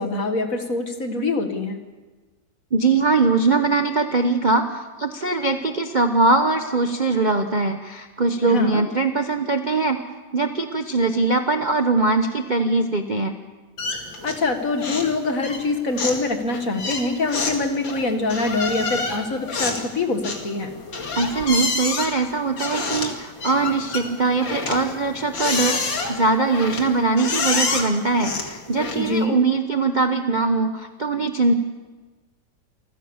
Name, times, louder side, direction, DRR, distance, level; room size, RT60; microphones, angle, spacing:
voice 1, 0.0-1.8 8.4-8.8 14.2-20.7 29.0-29.4, left 3 dB, 45° left, 6 dB, 2.2 m, -24 dB
voice 2, 2.7-10.0 10.3-13.3 21.1-31.5, right 3 dB, 35° right, 5 dB, 0.8 m, -21 dB
sound 1, 13.8-14.5 14.8-15.2 15.4-29.2, left 4 dB, 80° left, 3.0 m, -28 dB
27.5 x 15.5 x 7.2 m, 1.3 s
omnidirectional pair, 2.0 m